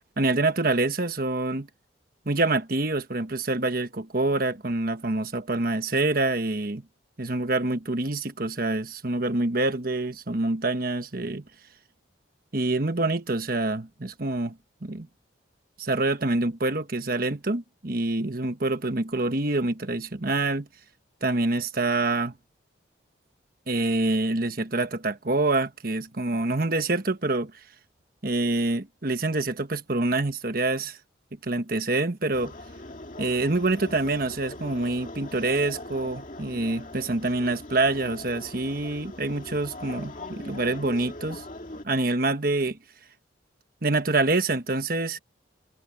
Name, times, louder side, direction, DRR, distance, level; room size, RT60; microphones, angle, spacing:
voice 1, 0.2-1.7 2.2-6.8 7.2-11.4 12.5-14.6 14.8-15.1 15.8-20.7 21.2-22.3 23.7-27.5 28.2-31.0 31.4-32.5 33.2-41.4 41.8-42.7 43.8-45.2, right 2 dB, 50° right, 1.3 m, -26 dB
sound 1, 32.3-41.8, left 1 dB, 40° left, 2.2 m, -41 dB
head